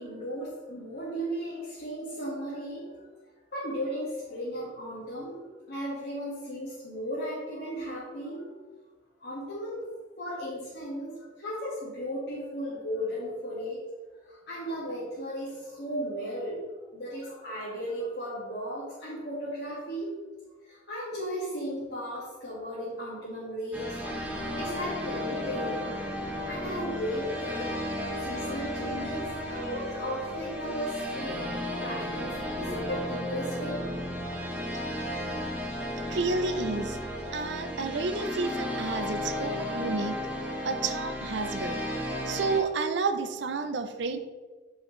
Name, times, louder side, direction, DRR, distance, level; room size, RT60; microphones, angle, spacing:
voice 1, 0.0-2.9 3.5-5.4 5.7-8.5 9.2-9.9 10.2-13.8 14.3-16.6 16.9-20.1 20.7-24.0 24.4-25.9 26.5-31.5 31.8-34.0, equal, 55° left, -8 dB, 1.8 m, -35 dB
sound 1, 23.7-42.6, left 1 dB, 10° right, 0.9 m, -34 dB
voice 2, 36.1-37.0 37.3-40.2 40.6-41.8 42.3-44.2, right 4 dB, 65° right, 8 dB, 0.5 m, -30 dB
8.9 x 5.0 x 3.1 m, 1.3 s
head